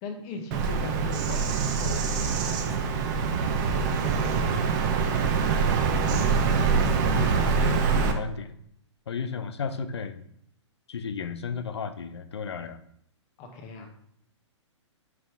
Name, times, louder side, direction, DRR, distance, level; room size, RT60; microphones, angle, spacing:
voice 1, 0.0-3.0 4.0-5.3 9.3-9.5 13.4-14.0, left 2 dB, 30° left, 5 dB, 1.6 m, -40 dB
Bird vocalization bird call bird song, 0.5-8.1, right 5 dB, 40° right, 1.0 m, -24 dB
voice 2, 6.8-8.6 9.1-10.2 10.9-12.8, left 5 dB, 60° left, 10 dB, 0.8 m, -34 dB
7.4 x 6.0 x 3.5 m, 0.69 s
figure-of-eight pair, 120°, 15 cm